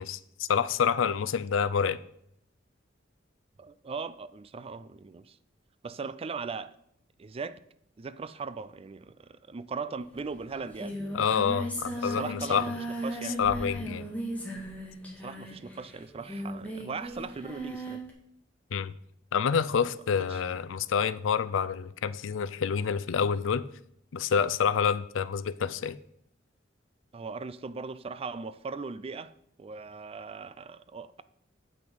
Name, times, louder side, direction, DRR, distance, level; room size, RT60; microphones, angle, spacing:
voice 1, 0.0-2.0 11.1-12.6 13.4-14.0 18.7-18.9 19.3-23.6 24.1-26.0, left 6 dB, 85° left, 0.4 m, -28 dB
voice 2, 3.6-5.4 5.8-6.7 7.2-7.6 8.0-11.0 12.0-12.7 13.0-13.4 15.2-18.0 20.3-20.4 27.1-29.3 29.6-31.2, right 4 dB, 30° right, 0.4 m, -39 dB
Singing, 10.1-10.2 10.4-18.1, equal, 10° left, 1.7 m, -37 dB
8.1 x 5.9 x 5.3 m
head